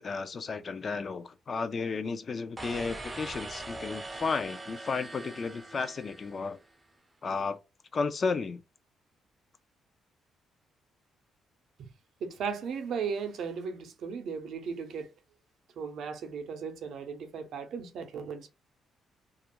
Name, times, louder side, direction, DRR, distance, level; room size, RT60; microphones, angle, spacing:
voice 1, 0.0-6.6 7.2-7.6 7.9-8.6, left 4 dB, 45° left, 0.4 m, -33 dB
sound 1, 2.6-6.8, right 2 dB, 20° right, 0.4 m, -42 dB
voice 2, 12.2-15.1 15.8-18.5, right 6 dB, 70° right, 0.5 m, -36 dB
2.4 x 2.1 x 2.9 m
cardioid pair, 90°, 0 cm